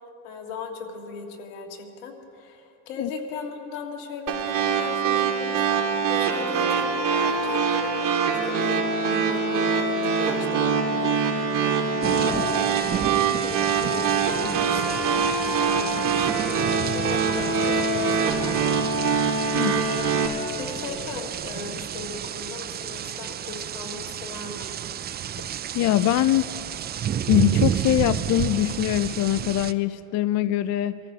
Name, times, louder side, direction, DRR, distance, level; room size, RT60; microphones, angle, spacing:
voice 1, 0.2-12.8 13.4-18.6 19.6-20.1 20.6-24.7, left 4 dB, 85° left, 2 dB, 1.9 m, -37 dB
sound 1, 4.3-20.3, right 5 dB, 55° right, 2.0 m, -24 dB
sound 2, 12.0-29.7, right 10 dB, 25° right, 0.4 m, -31 dB
voice 2, 25.7-26.5 27.3-31.0, left 13 dB, 45° left, 14 dB, 0.4 m, -23 dB
24.5 x 14.0 x 2.8 m, 3.0 s
supercardioid pair, 90°, 39 cm